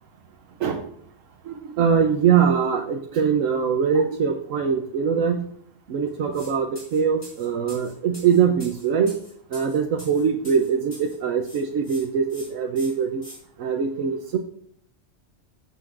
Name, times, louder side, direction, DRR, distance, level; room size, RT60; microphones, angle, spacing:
voice 1, 1.5-5.5 5.9-9.1 9.5-13.2 13.6-14.4, right 7 dB, 85° right, 4 dB, 1.1 m, -22 dB
sound 1, 6.3-6.5 6.8-11.2 11.4-12.0 12.3-12.5 12.8-13.4, equal, 55° left, 5.2 m, -44 dB
16.5 x 6.9 x 2.5 m, 0.64 s
omnidirectional pair, 1.3 m